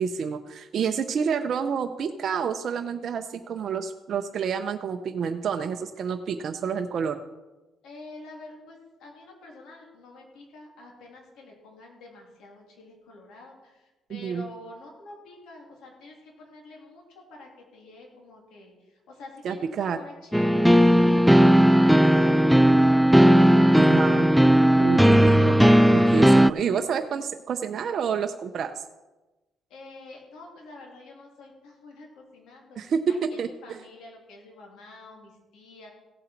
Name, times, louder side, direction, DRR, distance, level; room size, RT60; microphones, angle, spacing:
voice 1, 0.0-7.2 14.1-14.5 19.4-20.0 23.7-24.3 24.8-25.5 25.9-28.7 32.8-33.8, right 6 dB, 60° right, 5 dB, 0.6 m, -28 dB
voice 2, 7.8-13.8 14.1-17.0 17.3-18.7 19.1-22.1 29.7-35.9, left 2 dB, 85° left, 0 dB, 3.2 m, -47 dB
sound 1, 20.3-26.5, equal, ahead, 0.3 m, -16 dB
16.0 x 7.9 x 4.5 m, 1.1 s
cardioid pair, 90°, 0 cm